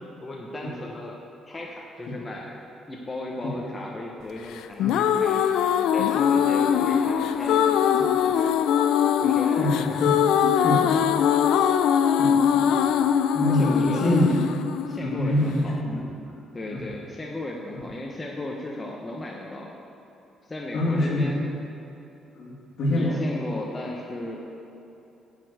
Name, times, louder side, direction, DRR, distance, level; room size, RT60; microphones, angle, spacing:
voice 1, 0.2-1.2 1.5-2.5 2.9-5.4 5.9-8.6 9.2-9.7 10.7-11.0 13.5-14.2 14.9-15.9 16.5-19.7 20.5-21.4 22.9-24.4, left 1 dB, 15° left, -1 dB, 0.7 m, -35 dB
sound 1, 4.6-15.6, left 8 dB, 85° left, 0.4 m, -22 dB
voice 2, 9.6-10.1 10.5-10.9 12.2-12.7 13.3-14.3 15.0-16.0 16.7-16.8 20.7-21.3 22.4-23.2, left 1 dB, 55° left, -4 dB, 2.4 m, -25 dB
9.2 x 5.3 x 7.9 m, 2.9 s
cardioid pair, 160°, 0 cm